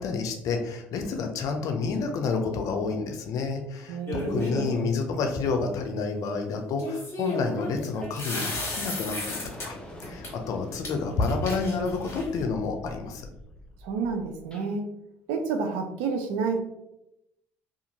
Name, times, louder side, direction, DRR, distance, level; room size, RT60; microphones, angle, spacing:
voice 1, 0.0-13.3, left 4 dB, 60° left, 5 dB, 0.5 m, -29 dB
voice 2, 3.9-4.8 13.8-14.8 15.3-16.6, right 4 dB, 80° right, 5 dB, 0.4 m, -29 dB
sound 1, 4.1-4.8 6.8-9.7 10.0-10.3 10.8-10.9 11.2-12.4, left 2 dB, 40° left, 1.2 m, -33 dB
sound 2, 8.0-8.2 8.5-14.7, left 1 dB, 15° left, 0.7 m, -44 dB
2.5 x 2.4 x 2.8 m, 0.85 s
hypercardioid pair, 60°, 7 cm